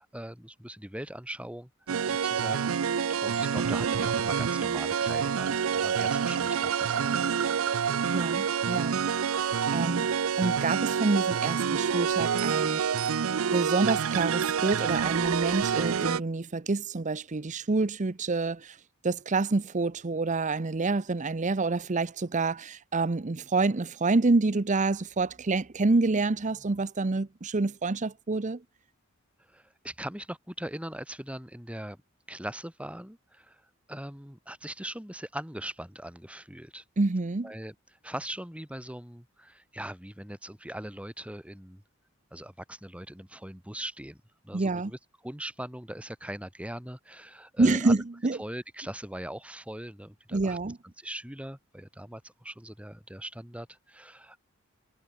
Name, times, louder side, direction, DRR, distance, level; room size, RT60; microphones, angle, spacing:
voice 1, 0.0-1.7 2.1-2.7 3.2-7.3 29.5-32.0 32.3-33.6 33.9-36.8 37.4-37.7 38.0-41.8 42.3-45.0 45.2-48.0 48.4-50.6 51.0-54.4, right 1 dB, 5° right, 3.9 m, -40 dB
sound 1, 1.9-16.2, right 7 dB, 80° right, 0.5 m, -27 dB
voice 2, 8.1-9.0 9.7-10.1 10.4-12.8 13.5-18.8 19.0-28.6 37.0-37.5 44.5-44.9 47.6-48.4 50.3-50.8, right 3 dB, 35° right, 0.7 m, -27 dB
head